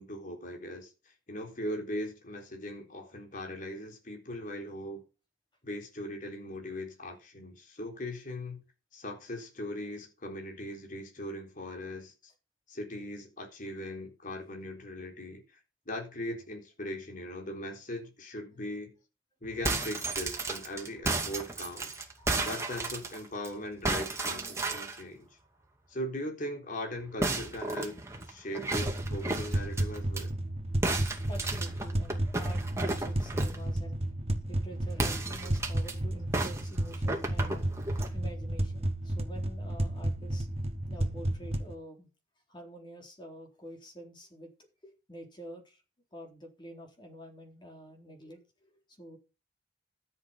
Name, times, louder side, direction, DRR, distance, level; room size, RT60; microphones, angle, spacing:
voice 1, 0.0-5.0 5.6-8.6 8.9-12.3 12.7-15.6 15.9-18.9 19.4-22.0 22.4-25.4 25.9-28.0 28.3-30.3, left 1 dB, 45° left, 3.9 m, -39 dB
sound 1, 19.5-23.5 23.8-25.0 27.2-30.2 30.8-33.6 34.9-35.9 36.3-38.1, right 2 dB, 15° right, 2.3 m, -33 dB
sound 2, 28.8-41.7, right 1 dB, 35° right, 1.4 m, -32 dB
voice 2, 31.3-34.0 34.5-37.7 38.1-40.5 40.9-42.1 42.5-44.5 44.8-45.8 46.1-49.2, equal, 25° left, 3.8 m, -48 dB
13.5 x 7.9 x 5.8 m
head